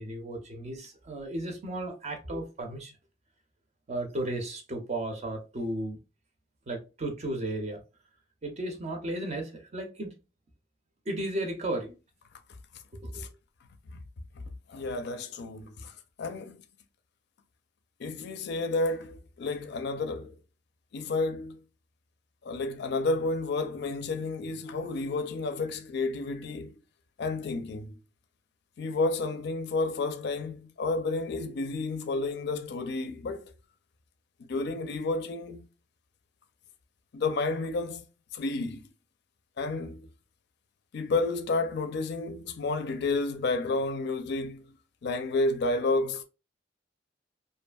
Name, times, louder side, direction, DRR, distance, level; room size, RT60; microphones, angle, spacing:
voice 1, 0.0-2.9 3.9-6.0 6.7-7.8 8.4-10.1 11.1-12.0 12.9-13.3, right 1 dB, 35° right, 0.5 m, -34 dB
voice 2, 14.7-15.9 16.2-16.6 18.0-20.3 20.9-21.6 22.4-26.8 27.2-28.0 28.8-33.5 34.5-35.7 37.1-38.0 38.3-38.8 39.6-40.1 40.9-44.6 45.0-46.2, left 3 dB, 60° left, 0.4 m, -31 dB
2.6 x 2.4 x 2.2 m
head